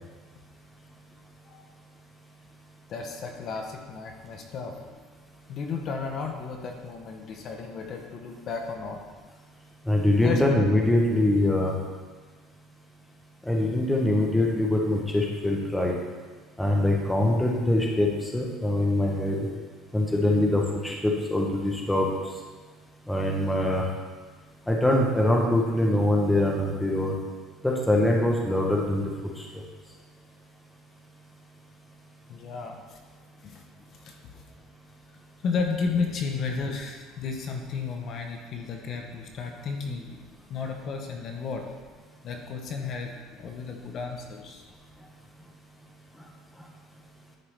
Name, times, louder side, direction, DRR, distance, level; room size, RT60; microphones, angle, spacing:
voice 1, 2.9-4.8 5.5-9.0 10.2-10.4 32.3-32.8 33.4-33.6 34.0-34.4 35.4-40.2 40.5-41.6 42.2-43.1 43.4-44.6, left 5 dB, 35° left, 3 dB, 0.8 m, -33 dB
voice 2, 9.9-11.7 13.5-15.9 16.6-19.5 19.9-22.1 23.1-23.9 24.7-27.1 27.6-29.0 29.4-29.5, left 1 dB, 5° left, -1 dB, 0.8 m, -23 dB
11.5 x 4.6 x 3.3 m, 1.4 s
cardioid pair, 155°, 0 cm